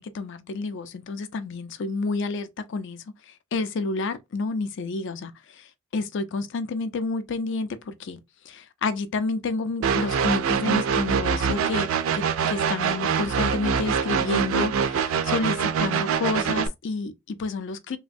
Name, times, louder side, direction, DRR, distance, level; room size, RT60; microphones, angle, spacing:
voice 1, 0.0-8.2 8.4-11.9 12.1-18.0, left 3 dB, 60° left, 0.5 m, -30 dB
sound 1, 9.8-16.7, right 6 dB, 70° right, 0.3 m, -24 dB
3.1 x 2.1 x 2.5 m
head